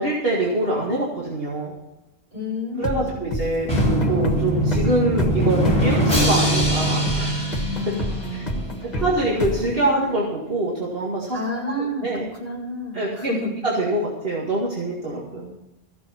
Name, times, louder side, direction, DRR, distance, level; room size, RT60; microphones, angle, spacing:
voice 1, 0.0-1.8 2.8-3.7 4.1-7.4 7.9-8.0 8.3-8.4 9.0-11.4 11.8-12.2 12.9-13.3 13.6-15.6, right 2 dB, 60° right, -4 dB, 2.3 m, -24 dB
voice 2, 2.3-3.1 8.0-9.0 11.3-13.5, left 1 dB, 35° right, -5 dB, 5.6 m, -30 dB
sound 1, 2.8-10.4, left 1 dB, 40° left, 1.6 m, -29 dB
Drum, 3.7-8.5, right 1 dB, 5° left, 5.9 m, -22 dB
15.0 x 7.0 x 7.3 m, 0.99 s
omnidirectional pair, 1.1 m